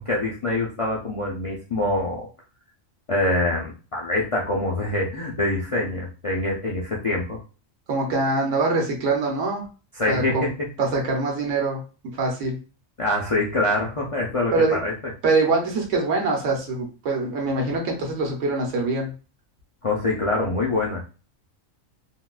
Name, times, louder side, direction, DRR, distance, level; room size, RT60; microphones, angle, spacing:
voice 1, 0.0-2.3 3.1-7.4 10.0-10.5 13.0-14.9 19.8-21.0, left 2 dB, 65° left, -3 dB, 0.3 m, -25 dB
voice 2, 7.9-9.6 10.1-10.5 10.8-11.8 12.2-12.6 14.5-14.8 15.2-19.1, right 3 dB, 70° right, 0 dB, 1.2 m, -23 dB
3.7 x 2.2 x 2.3 m, 0.34 s
omnidirectional pair, 1.4 m